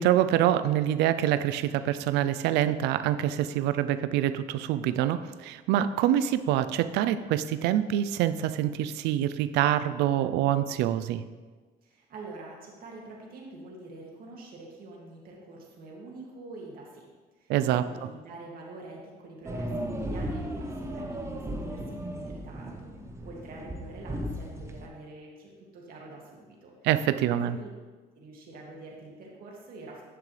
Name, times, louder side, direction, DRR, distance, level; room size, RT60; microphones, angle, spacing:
voice 1, 0.0-11.2 17.5-17.8 26.8-27.6, right 11 dB, 90° right, 12 dB, 0.5 m, -25 dB
voice 2, 11.8-17.1 17.4-22.9 23.2-26.7 27.3-27.7 28.2-30.0, right 2 dB, 60° right, -2 dB, 2.3 m, -46 dB
sound 1, 19.4-24.9, equal, 15° right, 0.9 m, -36 dB
10.5 x 6.9 x 3.3 m, 1.4 s
cardioid pair, 110°, 17 cm